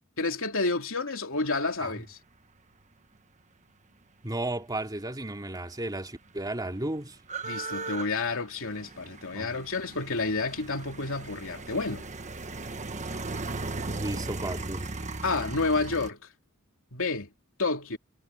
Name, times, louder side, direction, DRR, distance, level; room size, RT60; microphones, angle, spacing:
voice 1, 0.2-2.2 7.4-12.1 15.2-16.3 16.9-17.3 17.6-18.0, left 3 dB, 65° left, 3.3 m, -30 dB
voice 2, 4.2-7.2 9.3-9.5 14.0-14.9, right 1 dB, 20° right, 2.5 m, -34 dB
sound 1, 5.4-5.5 5.7-16.1, right 3 dB, 35° right, 1.3 m, -37 dB
head